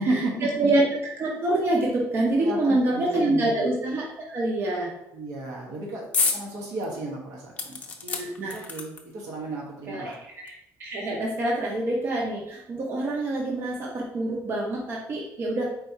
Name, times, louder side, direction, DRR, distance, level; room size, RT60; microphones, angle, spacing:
voice 1, 0.0-0.5 2.4-3.5 5.1-6.0 6.3-10.2, right 2 dB, 80° right, -3 dB, 1.3 m, -33 dB
voice 2, 0.6-4.9 8.1-8.5 9.9-10.1 10.4-10.5 10.8-15.6, right 1 dB, 40° right, -2 dB, 0.8 m, -26 dB
sound 1, 6.1-6.4 6.8-6.9 7.6-9.2 10.1-10.2 10.5-10.6, left 4 dB, 25° left, 0.6 m, -28 dB
4.4 x 2.7 x 4.5 m, 0.81 s
cardioid pair, 145°, 6 cm